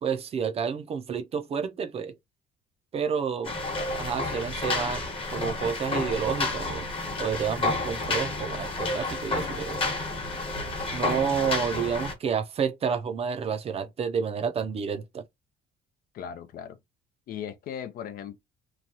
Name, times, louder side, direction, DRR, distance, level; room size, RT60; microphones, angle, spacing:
voice 1, 0.0-2.2 2.9-3.5 3.9-5.0 5.3-6.9 7.2-9.8 10.9-15.2, right 6 dB, 35° right, 0.5 m, -30 dB
sound 1, 3.4-12.1, left 2 dB, 35° left, 1.1 m, -30 dB
voice 2, 16.1-16.8 17.3-18.4, left 9 dB, 60° left, 0.5 m, -37 dB
3.0 x 2.3 x 2.7 m
cardioid pair, 110°, 17 cm